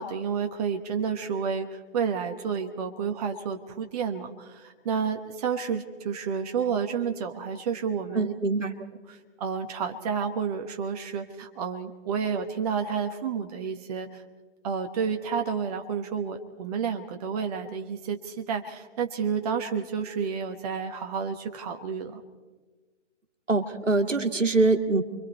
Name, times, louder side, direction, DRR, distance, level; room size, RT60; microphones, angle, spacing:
voice 1, 0.0-8.3 9.1-14.2 14.6-22.2, right 6 dB, 30° right, 5 dB, 1.1 m, -30 dB
voice 2, 8.1-8.7 23.5-25.0, right 3 dB, 85° right, 6 dB, 1.9 m, -23 dB
29.0 x 23.5 x 4.2 m, 1.4 s
figure-of-eight pair, 135°, 36 cm